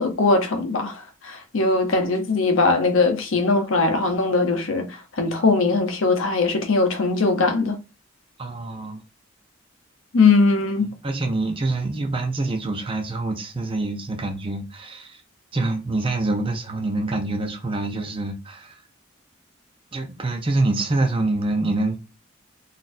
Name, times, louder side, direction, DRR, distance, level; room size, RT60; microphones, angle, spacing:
voice 1, 0.0-7.8 10.1-10.9, left 3 dB, 85° left, 0.7 m, -20 dB
voice 2, 8.4-9.0 10.8-15.2 15.5-18.7 19.9-22.0, right 2 dB, 25° right, 0.6 m, -26 dB
4.1 x 2.6 x 2.5 m
head